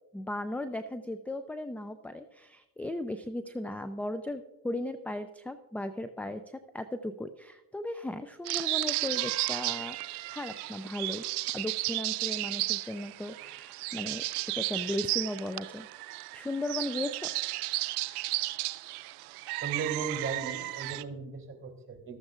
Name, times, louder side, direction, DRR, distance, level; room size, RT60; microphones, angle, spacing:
voice 1, 0.1-10.0 10.3-11.3 11.5-14.2 14.5-15.9 16.3-17.3, left 1 dB, 5° left, 10 dB, 0.4 m, -36 dB
sound 1, 8.4-21.0, right 19 dB, 85° right, 0.6 m, -34 dB
voice 2, 19.6-22.2, right 5 dB, 30° right, 3 dB, 2.9 m, -36 dB
14.0 x 13.0 x 2.5 m, 1.0 s
supercardioid pair, 80°, 43 cm